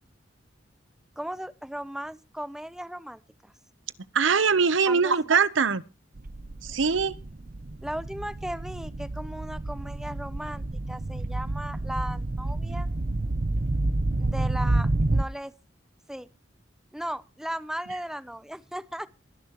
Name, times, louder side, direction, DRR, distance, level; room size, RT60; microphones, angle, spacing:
voice 1, 1.2-3.5 4.9-5.1 7.8-12.9 14.2-15.5 16.1-16.3 16.9-19.1, equal, 5° right, 0.5 m, -36 dB
voice 2, 4.1-5.8 6.6-7.2, right 5 dB, 90° right, 0.8 m, -22 dB
sound 1, 6.2-15.2, right 2 dB, 50° right, 0.8 m, -29 dB
23.0 x 10.5 x 3.0 m
head